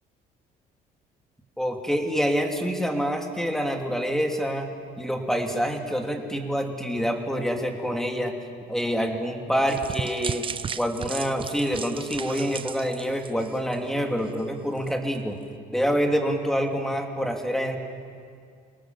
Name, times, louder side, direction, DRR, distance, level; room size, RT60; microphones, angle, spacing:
voice 1, 1.6-8.3 8.7-10.5 10.7-15.4 15.7-17.8, equal, 5° left, 3 dB, 2.9 m, -26 dB
sound 1, 9.7-13.9 14.3-14.4 14.9-15.0, right 6 dB, 30° right, 0.7 m, -35 dB
29.5 x 19.0 x 7.4 m, 2.2 s
cardioid pair, 110°, 17 cm